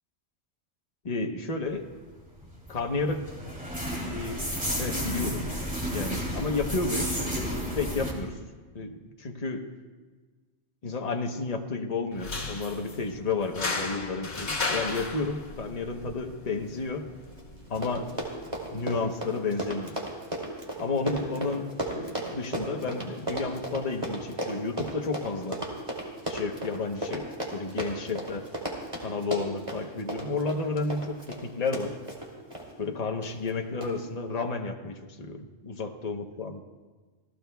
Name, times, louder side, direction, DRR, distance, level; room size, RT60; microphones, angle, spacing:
voice 1, 1.0-1.9 2.7-3.3 4.0-4.4 4.8-5.5 5.9-8.4 8.7-9.7 10.8-17.1 17.7-18.1 18.7-20.0 20.8-25.6 26.3-28.5 29.0-32.0 32.8-36.6, left 3 dB, 35° left, 3 dB, 1.0 m, -32 dB
sound 1, 2.2-8.1, equal, 5° right, 2.8 m, -32 dB
sound 2, 12.1-19.1, left 3 dB, 75° left, 2.2 m, -36 dB
Run, 17.4-17.5 17.7-32.7 33.2-33.5 33.8-33.9, right 1 dB, 25° right, 2.8 m, -35 dB
28.5 x 17.0 x 2.3 m, 1.4 s
omnidirectional pair, 1.3 m